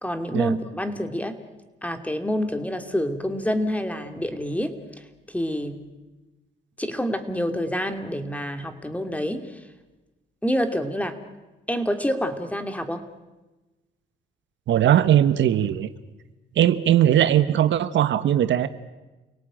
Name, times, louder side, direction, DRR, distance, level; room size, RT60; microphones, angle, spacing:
voice 1, 0.0-1.4 1.8-4.7 5.3-5.9 6.8-9.5 10.4-11.2 11.7-13.0, equal, 5° left, 7 dB, 2.7 m, -27 dB
voice 2, 14.7-15.9 16.6-18.7, right 11 dB, 70° right, 12 dB, 1.1 m, -19 dB
29.0 x 18.0 x 9.1 m, 1.1 s
cardioid pair, 90°, 20 cm